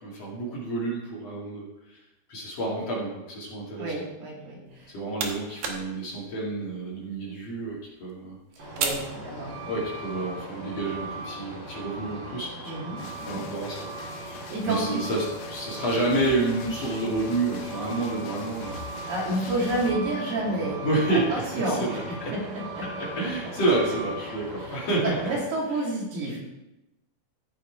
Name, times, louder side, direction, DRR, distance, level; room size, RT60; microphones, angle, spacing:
voice 1, 0.0-2.0 2.3-4.0 4.9-8.4 9.7-13.9 14.6-19.0 19.3-19.5 19.9-20.0 20.4-20.5 20.8-22.3 22.8-25.4, right 2 dB, 45° left, -5 dB, 3.1 m, -29 dB
voice 2, 3.8-4.9 8.8-9.8 12.7-13.4 14.2-15.1 19.1-20.8 21.1-23.3 24.3-24.4 24.6-24.8 25.2-26.4, right 1 dB, 80° right, -3 dB, 4.7 m, -30 dB
sound 1, 4.7-10.0, right 5 dB, 65° right, 2.0 m, -37 dB
Truck, 8.6-25.3, right 1 dB, 40° right, 3.8 m, -38 dB
sound 2, 13.0-19.9, left 6 dB, 85° left, 3.2 m, -46 dB
14.5 x 6.4 x 4.6 m, 0.97 s
omnidirectional pair, 4.5 m